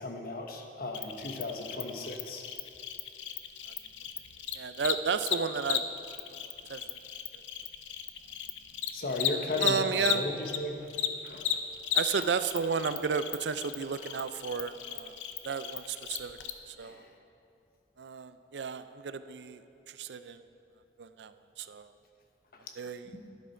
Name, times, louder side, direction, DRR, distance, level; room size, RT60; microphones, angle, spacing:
voice 1, 0.0-2.4 8.9-10.9 11.2-11.4 12.2-12.3 16.8-17.1 23.0-23.3, left 2 dB, 55° left, 3 dB, 1.1 m, -36 dB
Cricket, 0.9-10.6 10.9-16.5, left 10 dB, 90° left, 0.6 m, -35 dB
voice 2, 4.5-5.8 6.3-6.4 6.7-6.8 7.3-7.4 9.6-10.2 11.9-15.1 15.4-16.4 16.7-17.0 18.0-19.6 19.9-20.4 21.0-21.9 22.8-23.1, right 6 dB, 70° right, 12 dB, 0.4 m, -33 dB
12.0 x 10.0 x 4.5 m, 2.7 s
head